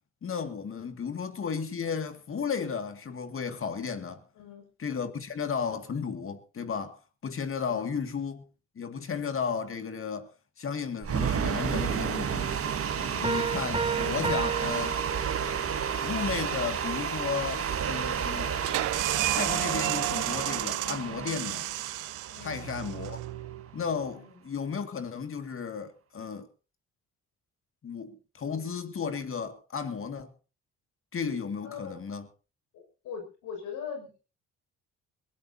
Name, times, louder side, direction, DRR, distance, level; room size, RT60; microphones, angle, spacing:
voice 1, 0.2-4.2 4.8-8.4 8.8-10.3 10.6-12.6 13.2-15.0 16.0-18.5 19.3-21.7 22.4-23.2 23.7-26.5 27.8-30.3 31.1-32.3, left 6 dB, 45° left, 2.2 m, -34 dB
voice 2, 4.3-4.7 7.7-8.0 13.0-13.4 14.0-14.2 22.3-22.8 24.1-24.5 31.6-32.0 32.7-34.2, left 7 dB, 90° left, 6.4 m, -42 dB
sound 1, 11.0-23.2, right 7 dB, 50° right, 1.8 m, -31 dB
sound 2, 13.2-15.7, right 5 dB, 20° right, 0.8 m, -32 dB
sound 3, 18.6-24.0, right 16 dB, 85° right, 0.7 m, -32 dB
21.5 x 17.0 x 2.8 m
cardioid pair, 90°, 30 cm